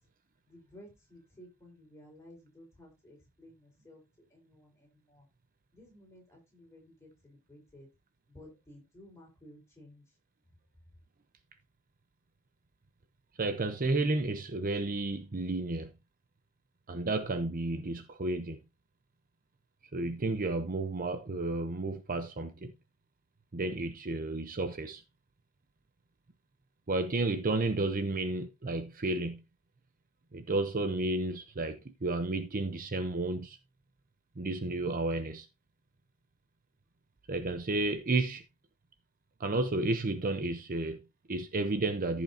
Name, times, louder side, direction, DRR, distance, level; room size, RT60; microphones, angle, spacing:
voice 1, 0.5-4.0 4.3-5.3 5.7-7.9 8.3-10.0, left 1 dB, 15° left, 4.6 m, -55 dB
voice 2, 13.4-15.9 16.9-18.6 19.9-22.7 23.5-25.0 26.9-29.4 30.3-33.6 34.4-35.5 37.3-38.4 39.4-42.2, right 2 dB, 40° right, 0.8 m, -32 dB
14.5 x 5.8 x 2.8 m
head